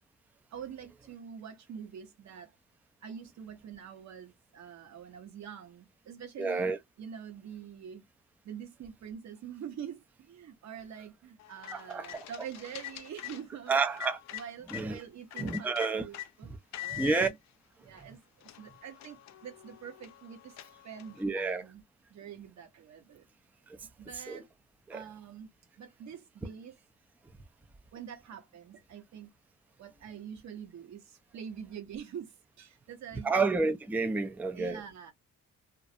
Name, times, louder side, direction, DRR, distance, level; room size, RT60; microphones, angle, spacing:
voice 1, 0.5-2.5 3.0-6.7 7.0-8.0 8.4-14.0 14.3-16.5 16.8-17.4 17.8-21.8 22.1-23.3 24.0-24.5 24.9-25.5 25.8-26.8 27.9-29.3 29.8-33.4 34.5-35.1, right 8 dB, 65° right, 1.0 m, -45 dB
voice 2, 6.4-6.8 11.7-12.1 13.7-14.2 14.7-15.0 15.4-16.0 16.9-17.3 21.2-21.6 23.7-23.8 24.3-24.4 24.9-25.0 33.2-34.8, right 4 dB, 5° right, 0.4 m, -29 dB
sound 1, 11.4-14.9 15.3-16.3 16.7-17.3 18.0-18.1 18.4-21.2, left 14 dB, 65° left, 0.4 m, -44 dB
2.4 x 2.0 x 2.6 m
cardioid pair, 90°, 30 cm